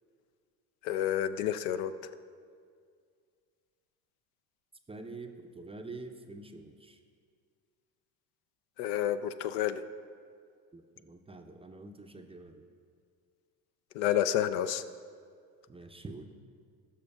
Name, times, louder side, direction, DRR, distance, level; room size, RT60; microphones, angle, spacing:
voice 1, 0.8-1.9 8.8-9.8 13.9-14.8, left 11 dB, 70° left, 11 dB, 0.5 m, -29 dB
voice 2, 4.9-7.0 10.7-12.6 15.7-16.2, right 3 dB, 15° right, 5 dB, 0.5 m, -46 dB
17.0 x 6.2 x 2.3 m, 2.2 s
hypercardioid pair, 65°, 45 cm